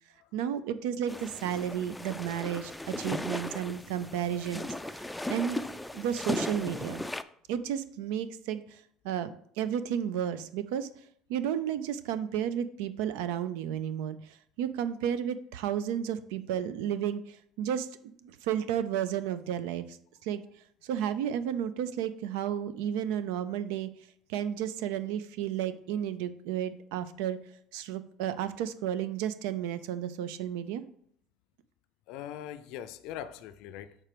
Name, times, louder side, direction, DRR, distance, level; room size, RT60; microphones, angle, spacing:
voice 1, 0.3-5.0 5.3-5.6 5.9-7.1 7.5-8.8 9.0-10.9 11.3-14.2 14.6-18.1 18.4-19.9 20.2-20.4 20.8-23.9 24.3-27.4 27.7-30.8, right 9 dB, 85° right, 0.5 m, -32 dB
sound 1, 1.1-7.2, left 1 dB, 5° left, 0.3 m, -37 dB
voice 2, 32.1-34.0, left 10 dB, 70° left, 0.4 m, -41 dB
6.0 x 4.4 x 5.0 m
supercardioid pair, 115°, 0 cm